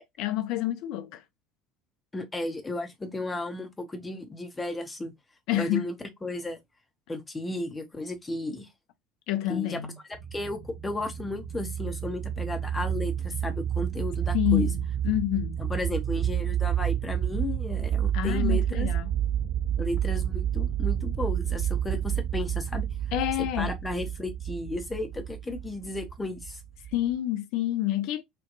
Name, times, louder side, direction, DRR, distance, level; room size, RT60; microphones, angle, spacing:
voice 1, 0.2-1.2 5.5-5.9 9.3-10.0 14.3-15.6 18.1-19.1 23.1-23.8 26.9-28.2, left 14 dB, 50° left, 0.4 m, -28 dB
voice 2, 2.1-5.1 5.6-5.9 6.2-6.6 7.1-8.7 9.5-9.8 10.3-14.7 15.6-18.9 19.8-22.9 23.4-26.6, left 2 dB, 15° left, 0.7 m, -34 dB
sound 1, 10.1-27.1, right 10 dB, 35° right, 1.3 m, -30 dB
2.6 x 2.2 x 2.5 m
figure-of-eight pair, 65°, 0 cm